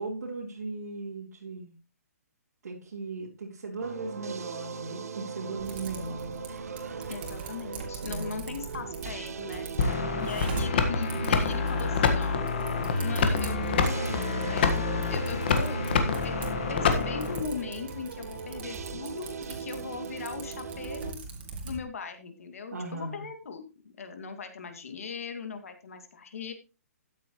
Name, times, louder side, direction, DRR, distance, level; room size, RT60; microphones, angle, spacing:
voice 1, 0.0-1.7 2.6-6.4 8.0-8.5 9.8-10.3 22.7-23.2, right 3 dB, 90° right, -4 dB, 3.8 m, -37 dB
sound 1, 3.8-21.1, right 6 dB, 65° right, 1.1 m, -39 dB
Typing, 5.6-21.8, right 3 dB, 35° right, 2.6 m, -42 dB
voice 2, 7.1-9.7 10.2-12.5 13.0-14.2 14.5-15.8 16.2-21.2 21.6-26.5, left 5 dB, 60° left, 7 dB, 2.4 m, -39 dB
sound 2, 9.8-17.4, left 5 dB, 40° left, 1.5 m, -27 dB
13.0 x 9.8 x 3.1 m, 0.30 s
hypercardioid pair, 175°, 9 cm